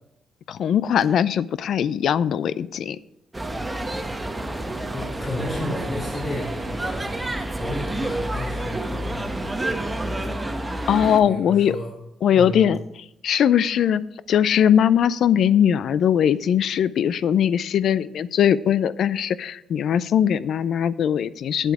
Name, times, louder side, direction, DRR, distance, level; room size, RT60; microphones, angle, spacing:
voice 1, 0.5-3.0 10.9-11.8 12.2-12.8 13.2-21.7, left 9 dB, 65° left, 18 dB, 0.4 m, -20 dB
sound 1, 3.3-11.2, right 1 dB, 15° right, 1.0 m, -29 dB
voice 2, 4.9-7.1 7.5-9.2 11.2-11.9 12.3-12.7, left 1 dB, 40° left, -6 dB, 2.7 m, -32 dB
9.2 x 8.0 x 4.8 m, 0.82 s
cardioid pair, 90°, 0 cm